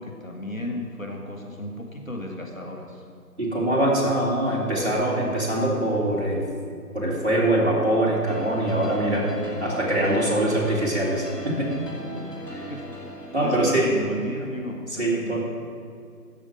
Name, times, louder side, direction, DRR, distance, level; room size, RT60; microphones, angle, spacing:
voice 1, 0.0-3.0 10.5-10.6 12.7-12.9 13.4-15.4, left 1 dB, 55° left, 2 dB, 1.7 m, -34 dB
voice 2, 3.4-6.5 6.9-9.3 9.6-11.7 12.5-12.7 13.3-13.9 15.0-15.4, right 1 dB, 45° right, -5 dB, 3.3 m, -23 dB
sound 1, 8.3-14.5, equal, 85° left, 2.9 m, -35 dB
13.5 x 5.8 x 9.3 m, 2.3 s
figure-of-eight pair, 175°, 47 cm